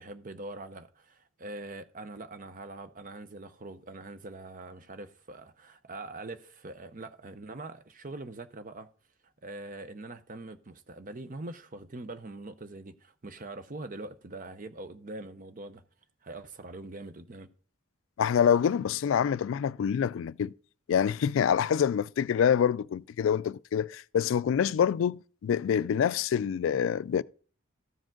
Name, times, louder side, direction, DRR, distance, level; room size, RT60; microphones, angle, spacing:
voice 1, 0.0-8.9 9.4-15.8 16.2-17.5, right 2 dB, 40° right, 0.7 m, -43 dB
voice 2, 18.2-20.5 20.9-27.2, left 8 dB, 70° left, 0.3 m, -26 dB
14.0 x 5.0 x 3.8 m
head